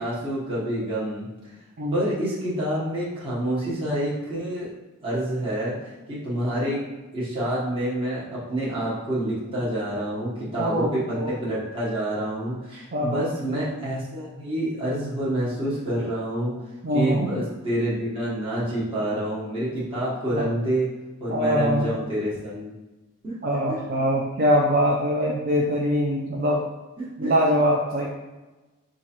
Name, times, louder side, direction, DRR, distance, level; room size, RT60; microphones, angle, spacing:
voice 1, 0.0-1.5 1.9-4.7 5.0-6.8 7.1-16.5 16.9-20.9 21.2-22.7 23.2-23.4 23.7-23.8 27.0-27.3, right 1 dB, 25° right, -9 dB, 1.2 m, -28 dB
voice 2, 10.6-11.3 12.9-13.3 16.8-17.3 20.3-20.5 21.3-21.9 23.4-26.6 27.2-28.1, equal, 45° right, -3 dB, 0.6 m, -23 dB
4.6 x 2.5 x 4.3 m, 1.1 s
head